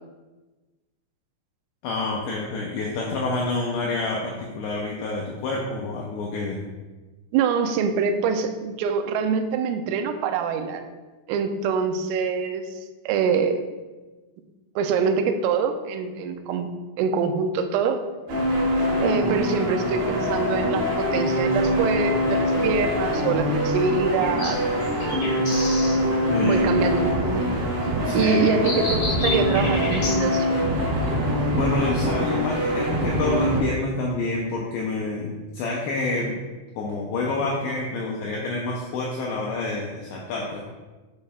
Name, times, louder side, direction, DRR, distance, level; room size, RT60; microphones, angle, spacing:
voice 1, 1.8-6.6 18.7-18.9 26.3-26.7 28.0-28.6 31.5-36.4 36.8-40.6, left 3 dB, 80° left, -2 dB, 2.5 m, -28 dB
voice 2, 7.3-10.8 11.3-12.7 13.1-13.6 14.8-16.7 17.0-18.0 19.0-24.7 26.4-27.5 28.1-30.5, right 6 dB, 85° right, 6 dB, 3.3 m, -24 dB
sound 1, 18.3-33.6, equal, 55° right, 3.4 m, -24 dB
sound 2, 21.5-30.2, left 2 dB, 55° left, 1.7 m, -34 dB
9.9 x 6.4 x 2.4 m, 1.2 s
omnidirectional pair, 5.8 m